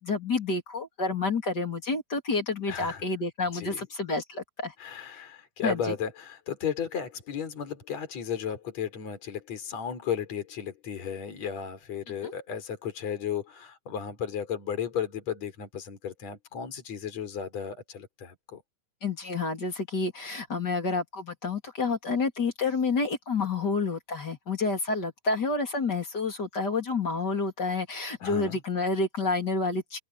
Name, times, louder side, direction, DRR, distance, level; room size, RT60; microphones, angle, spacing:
voice 1, 0.0-4.7 5.6-5.8 12.2-12.3 19.0-30.0, left 3 dB, 30° left, 3.9 m, -29 dB
voice 2, 2.7-3.0 3.5-3.9 4.8-18.6 28.2-28.6, left 8 dB, 55° left, 5.4 m, -34 dB
open air
omnidirectional pair, 3.6 m